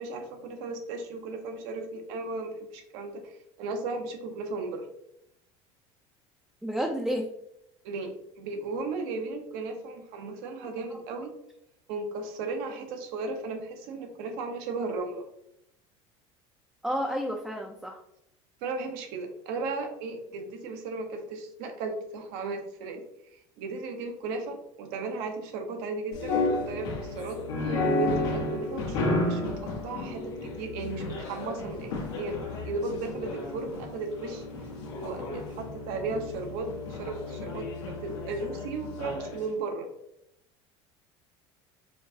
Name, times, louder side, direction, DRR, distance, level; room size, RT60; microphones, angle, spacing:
voice 1, 0.0-4.9 7.8-11.3 11.9-15.2 18.6-23.0 23.6-27.4 28.0-34.4 35.0-39.9, right 3 dB, 70° right, 4 dB, 0.8 m, -35 dB
voice 2, 6.6-7.3 16.8-18.0, equal, 5° right, 1 dB, 0.4 m, -30 dB
sound 1, 26.1-39.4, left 2 dB, 80° left, 1.0 m, -32 dB
4.5 x 2.3 x 2.7 m, 0.78 s
supercardioid pair, 90°, 15 cm